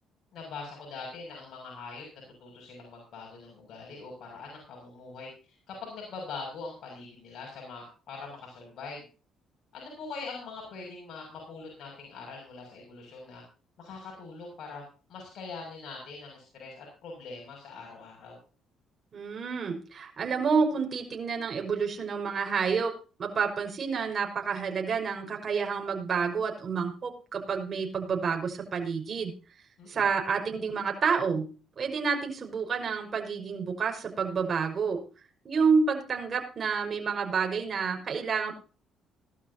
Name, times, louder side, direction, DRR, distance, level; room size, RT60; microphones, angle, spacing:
voice 1, 0.3-2.0 2.4-9.1 9.7-13.4 13.8-14.8 15.1-18.4 29.8-30.1, left 4 dB, 65° left, 0 dB, 6.7 m, -43 dB
voice 2, 19.1-22.9 23.2-29.3 29.9-31.5 31.8-35.0 35.4-38.5, right 5 dB, 45° right, 3 dB, 5.4 m, -29 dB
19.5 x 12.5 x 2.9 m, 0.35 s
cardioid pair, 85°, 0 cm